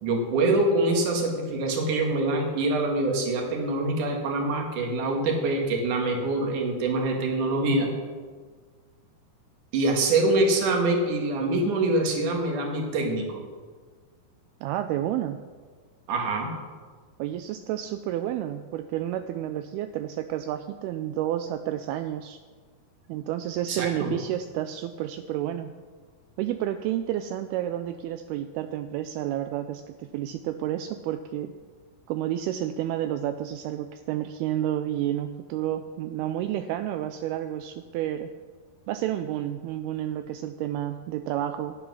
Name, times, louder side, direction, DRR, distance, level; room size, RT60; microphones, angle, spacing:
voice 1, 0.0-7.9 9.7-13.4 16.1-16.5 23.7-24.1, right 2 dB, 55° right, 2 dB, 3.1 m, -25 dB
voice 2, 14.6-15.4 17.2-22.4 23.1-25.7 26.4-31.5 32.1-38.3 38.9-41.8, right 12 dB, 85° right, 9 dB, 2.4 m, -30 dB
12.5 x 10.0 x 6.2 m, 1.5 s
omnidirectional pair, 4.7 m